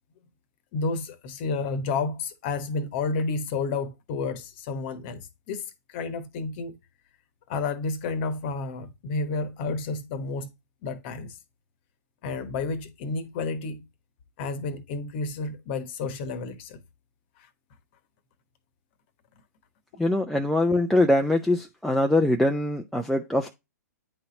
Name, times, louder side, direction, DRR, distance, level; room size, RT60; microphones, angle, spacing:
voice 1, 0.7-6.8 7.5-10.5 10.8-11.4 12.2-13.8 14.4-16.8, left 3 dB, 40° left, 1.1 m, -31 dB
voice 2, 20.0-23.5, left 1 dB, ahead, 0.5 m, -23 dB
9.5 x 4.1 x 3.9 m
figure-of-eight pair, 115°, 9 cm